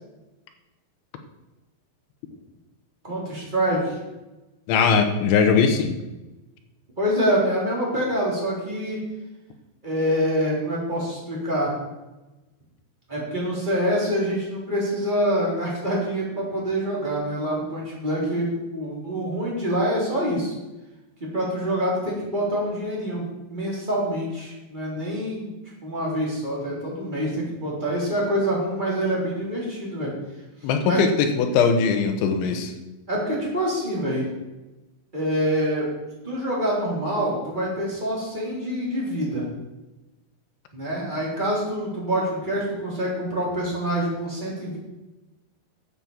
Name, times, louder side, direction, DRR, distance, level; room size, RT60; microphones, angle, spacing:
voice 1, 3.0-4.0 7.0-9.0 9.8-11.7 13.1-20.6 21.2-25.5 25.8-30.1 30.8-31.0 33.1-34.3 35.1-35.9 36.2-39.4 40.7-44.8, equal, 10° right, -5 dB, 3.4 m, -26 dB
voice 2, 4.7-5.9 30.6-32.7, left 5 dB, 75° left, 6 dB, 3.5 m, -20 dB
11.0 x 7.9 x 7.4 m, 1.1 s
omnidirectional pair, 5.5 m